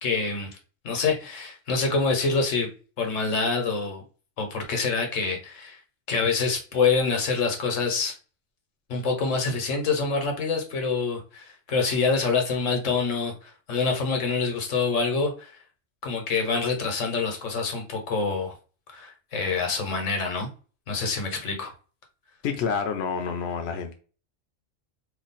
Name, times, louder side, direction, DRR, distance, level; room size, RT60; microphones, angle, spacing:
voice 1, 0.0-0.5 0.8-2.7 3.0-4.0 4.4-5.8 6.1-8.1 8.9-15.6 16.0-18.5 18.9-20.5 20.9-21.7, left 4 dB, 90° left, 1.4 m, -26 dB
voice 2, 22.4-24.0, left 6 dB, 65° left, 0.9 m, -28 dB
3.0 x 2.4 x 4.0 m
omnidirectional pair, 1.3 m